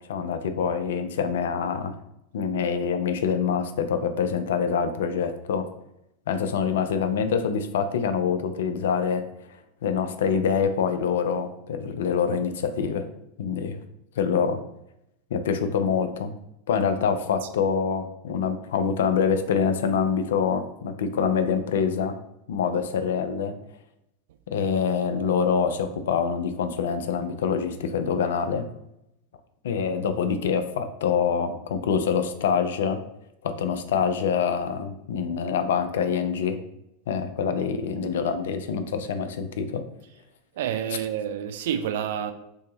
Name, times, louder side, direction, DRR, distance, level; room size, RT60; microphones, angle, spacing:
voice 1, 0.1-2.0 2.3-5.7 6.3-9.2 9.8-13.1 13.4-13.8 14.2-14.6 15.3-16.3 16.7-22.1 22.5-23.5 24.5-28.7 29.6-33.0 33.4-36.6 37.1-39.8, left 6 dB, 65° left, 8 dB, 0.3 m, -25 dB
voice 2, 40.6-42.3, right 9 dB, 60° right, 7 dB, 0.3 m, -28 dB
2.7 x 2.6 x 3.9 m, 0.81 s
figure-of-eight pair, 85°, 0 cm